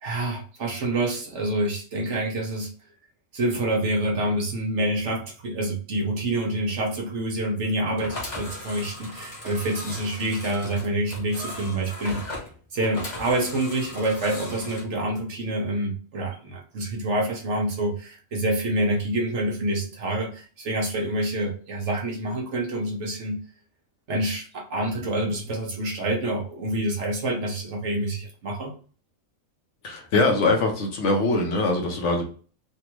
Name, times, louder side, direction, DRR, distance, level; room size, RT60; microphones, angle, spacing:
voice 1, 0.0-2.7 3.3-12.2 12.7-23.4 24.1-28.7, right 1 dB, 60° right, 1 dB, 1.1 m, -27 dB
sound 1, 7.9-14.8, left 1 dB, 35° left, 0.8 m, -38 dB
voice 2, 29.8-32.2, left 2 dB, 65° left, 2 dB, 1.0 m, -22 dB
3.4 x 2.3 x 2.9 m, 0.40 s
omnidirectional pair, 1.4 m